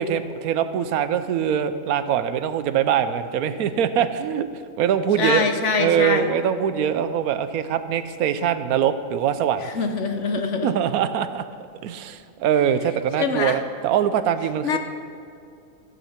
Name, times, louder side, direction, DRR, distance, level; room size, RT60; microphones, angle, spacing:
voice 1, 0.0-4.5 4.8-5.4 5.8-9.6 10.6-11.4 11.8-14.8, right 9 dB, 85° right, 11 dB, 1.1 m, -23 dB
voice 2, 5.2-6.3 9.6-10.7 13.2-13.6 14.6-14.8, left 4 dB, 60° left, 6 dB, 1.1 m, -24 dB
14.0 x 8.0 x 5.7 m, 2.5 s
omnidirectional pair, 1.5 m